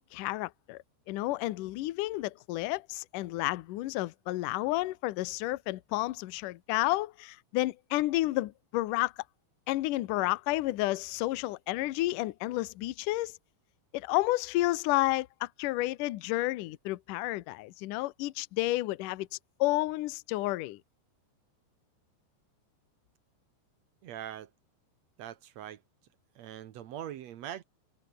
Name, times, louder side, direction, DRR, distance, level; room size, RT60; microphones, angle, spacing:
voice 1, 0.0-9.1 9.7-13.4 13.9-19.3 19.6-20.8, left 18 dB, 90° left, 1.8 m, -31 dB
voice 2, 24.0-24.5 25.2-25.8 26.3-27.6, right 11 dB, 90° right, 1.5 m, -42 dB
omnidirectional pair, 4.9 m